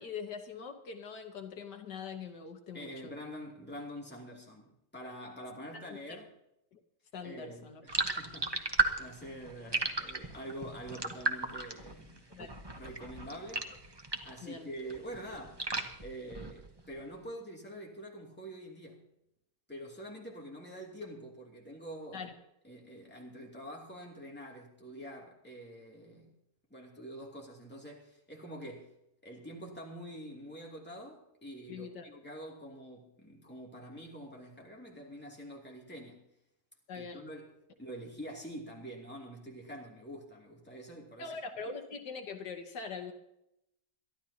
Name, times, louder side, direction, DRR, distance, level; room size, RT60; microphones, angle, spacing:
voice 1, 0.0-3.1 5.7-5.8 6.1-6.2 6.7-6.8 7.1-7.8 12.3-12.6 14.4-14.7 22.1-22.3 31.7-32.1 36.9-37.3 41.2-43.1, left 5 dB, 75° left, 1.9 m, -43 dB
voice 2, 2.7-6.3 7.2-12.3 12.8-13.7 14.2-15.7 16.0-19.0 19.7-22.2 22.6-26.3 26.7-28.9 29.2-36.2 36.9-37.5 37.8-41.4, equal, 5° left, 2.6 m, -46 dB
sound 1, 7.9-14.5 14.8-16.9, right 2 dB, 20° right, 0.9 m, -35 dB
23.0 x 13.0 x 2.8 m
omnidirectional pair, 1.8 m